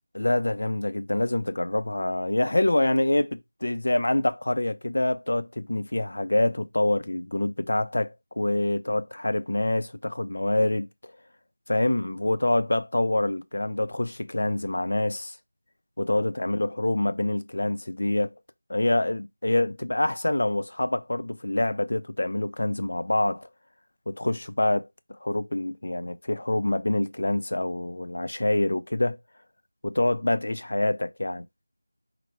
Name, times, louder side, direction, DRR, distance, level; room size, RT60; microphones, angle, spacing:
voice 1, 0.1-11.1 11.7-15.4 16.0-18.3 18.7-23.5 24.1-24.8 25.2-29.2 29.8-31.4, left 1 dB, 50° left, 0.5 m, -26 dB
4.9 x 2.1 x 4.4 m
figure-of-eight pair, 180°, 0 cm